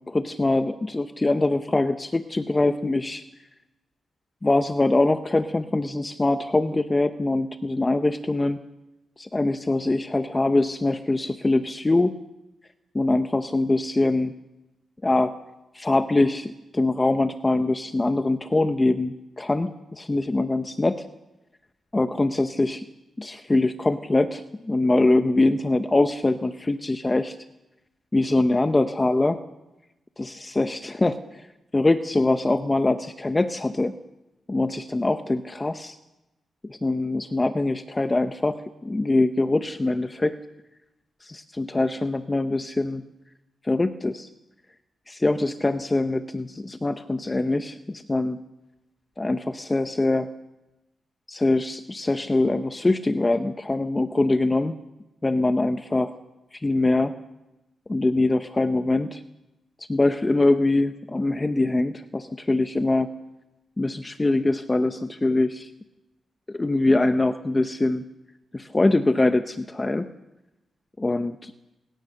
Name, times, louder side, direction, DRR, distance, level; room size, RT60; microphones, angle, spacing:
voice 1, 0.1-3.2 4.4-8.6 9.2-12.2 12.9-14.3 15.0-15.3 15.7-21.0 21.9-22.9 23.2-27.4 28.1-29.4 30.2-31.5 31.7-33.9 34.5-36.0 36.6-40.4 41.2-43.1 43.6-44.3 45.1-48.4 49.2-50.3 51.3-54.7 55.2-56.1 56.5-57.2 57.9-59.2 59.8-63.1 63.8-65.7 66.5-68.0 68.5-70.1 71.0-71.5, left 2 dB, 20° left, 9 dB, 0.9 m, -23 dB
28.0 x 17.0 x 6.6 m, 0.98 s
cardioid pair, 90°, 0 cm